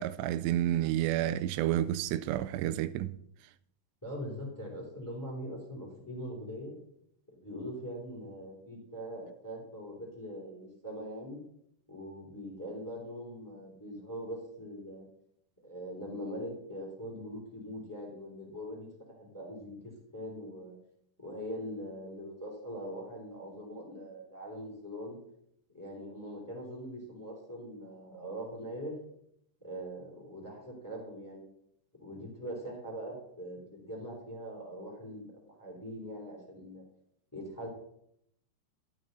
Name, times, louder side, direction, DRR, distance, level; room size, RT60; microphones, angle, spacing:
voice 1, 0.0-3.1, right 12 dB, 85° right, 2.7 m, -30 dB
voice 2, 4.0-6.8 7.3-11.4 11.9-15.0 15.6-20.7 21.2-25.2 25.7-29.0 29.6-31.4 32.0-36.8 37.3-37.7, equal, 5° left, 2.5 m, -42 dB
12.5 x 9.1 x 4.0 m
omnidirectional pair, 4.9 m